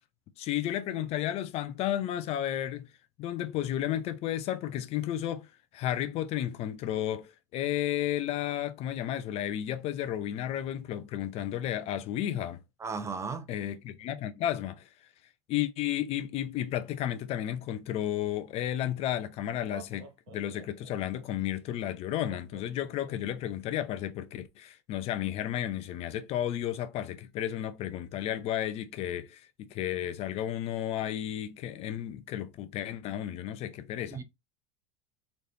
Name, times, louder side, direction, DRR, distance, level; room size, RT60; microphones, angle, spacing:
voice 1, 0.4-2.9 3.2-5.5 5.7-12.6 13.5-14.9 15.5-34.2, left 11 dB, 45° left, 0.7 m, -33 dB
voice 2, 12.8-13.5 34.1-34.2, right 5 dB, 20° right, 0.7 m, -35 dB
Laughter, 19.5-21.3 22.3-23.5, right 6 dB, 65° right, 0.8 m, -50 dB
4.1 x 3.3 x 2.7 m
supercardioid pair, 115°, 14 cm